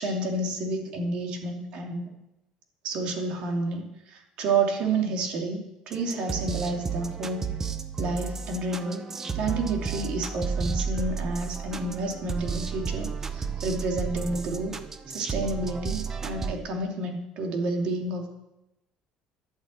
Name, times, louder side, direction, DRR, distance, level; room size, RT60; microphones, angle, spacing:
voice 1, 0.0-2.1 2.8-7.5 8.0-9.0 9.3-14.7 15.1-18.3, right 2 dB, 55° right, 2 dB, 2.6 m, -30 dB
sound 1, 5.9-16.6, right 5 dB, 20° right, 0.8 m, -32 dB
11.5 x 8.5 x 8.3 m, 0.92 s
cardioid pair, 160°, 2 cm